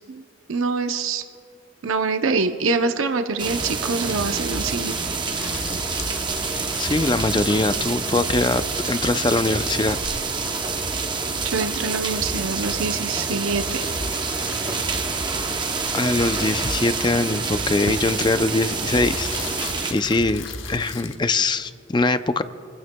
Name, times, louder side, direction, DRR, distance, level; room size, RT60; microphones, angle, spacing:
voice 1, 0.5-1.2 1.8-5.0 11.4-13.8, right 4 dB, 85° right, 7 dB, 0.6 m, -25 dB
sound 1, 3.4-19.9, right 4 dB, 20° right, 0.7 m, -27 dB
sound 2, 4.1-20.9, equal, 45° left, 3.3 m, -38 dB
sound 3, 5.0-8.6 10.0-11.2 11.6-12.7 13.8-15.1 15.8-17.6 18.5-21.2, left 6 dB, 75° left, 1.0 m, -40 dB
voice 2, 6.8-10.0 15.9-19.3 19.9-22.4, left 2 dB, 20° left, 11 dB, 0.4 m, -22 dB
28.5 x 15.5 x 2.2 m, 2.7 s
head